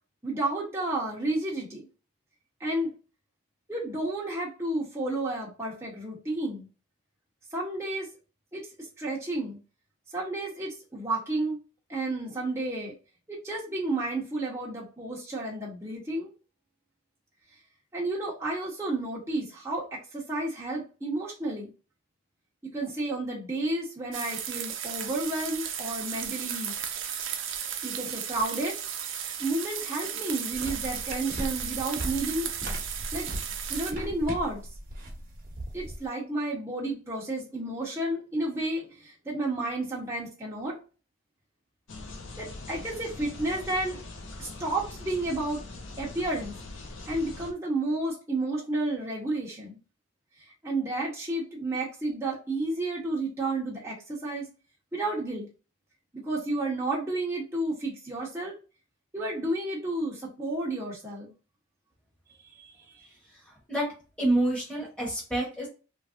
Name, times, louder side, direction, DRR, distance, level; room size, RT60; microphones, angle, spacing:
voice 1, 0.2-1.9 2.6-2.9 3.7-6.7 7.5-8.1 8.5-8.7 9.0-9.6 10.1-11.6 11.9-12.9 13.3-16.3 17.9-21.7 22.6-26.7 27.8-28.8 29.4-32.5 33.1-33.3 33.7-34.6 35.7-40.8 42.4-44.0 44.4-45.6 46.0-46.5 47.1-49.8 50.6-54.5 54.9-55.5 56.1-58.5 59.1-61.3 62.5-62.7, right 2 dB, 15° right, -4 dB, 0.8 m, -31 dB
sound 1, 24.1-33.9, right 9 dB, 70° right, 0.5 m, -35 dB
sound 2, 30.5-36.1, right 1 dB, 45° right, 0.9 m, -38 dB
sound 3, 41.9-47.5, left 2 dB, 70° left, 0.7 m, -42 dB
voice 2, 63.3-63.9 64.2-65.7, right 1 dB, 5° left, -4 dB, 1.2 m, -28 dB
3.2 x 2.6 x 2.4 m, 0.34 s
head